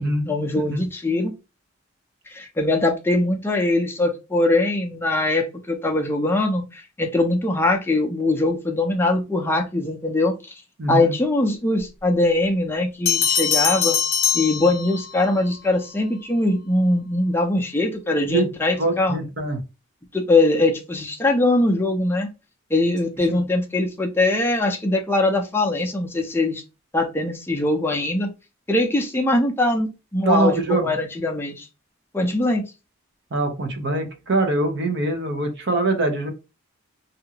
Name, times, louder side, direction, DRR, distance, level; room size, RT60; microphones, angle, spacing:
voice 1, 0.3-1.3 2.3-10.5 10.9-14.0 14.3-19.2 20.1-22.3 22.7-26.6 26.9-28.3 28.7-31.7 32.1-32.6, left 2 dB, 10° left, 1 dB, 0.4 m, -22 dB
voice 2, 10.8-11.1 18.3-18.5 18.8-19.6 23.4-23.5 30.2-30.8 33.3-36.3, right 2 dB, 60° right, 5 dB, 0.8 m, -23 dB
Bell, 13.1-15.3, left 7 dB, 70° left, 0.8 m, -22 dB
2.6 x 2.4 x 2.8 m, 0.28 s
head